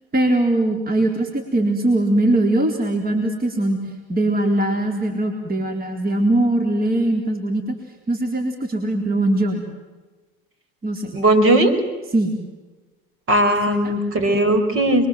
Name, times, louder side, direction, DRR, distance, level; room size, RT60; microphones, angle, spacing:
voice 1, 0.1-3.8 4.1-7.6 8.1-9.7 10.8-11.2 12.1-12.4 13.7-14.0, right 1 dB, 30° right, 3 dB, 4.2 m, -21 dB
voice 2, 11.1-11.7 13.3-15.1, right 1 dB, 45° right, 8 dB, 5.4 m, -17 dB
28.0 x 23.0 x 7.7 m, 1.2 s
hypercardioid pair, 75°, 29 cm